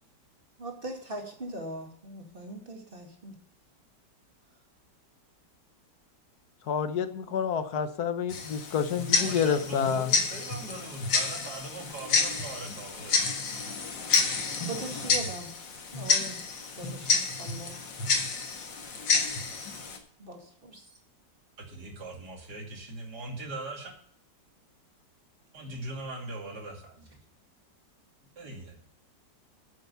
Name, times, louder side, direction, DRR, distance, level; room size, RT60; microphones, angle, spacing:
voice 1, 0.6-3.3 14.6-15.5 15.9-16.4 16.8-17.7 20.2-20.9, right 1 dB, 30° right, 2 dB, 2.3 m, -40 dB
voice 2, 6.7-10.1, left 7 dB, 60° left, 10 dB, 1.4 m, -28 dB
Tick-tock, 8.3-20.0, left 4 dB, 80° left, 2.3 m, -29 dB
voice 3, 9.1-13.3 21.6-23.9 25.5-27.2 28.4-28.9, right 2 dB, 60° right, 1 dB, 3.0 m, -40 dB
9.0 x 8.0 x 6.8 m, 0.63 s
omnidirectional pair, 1.9 m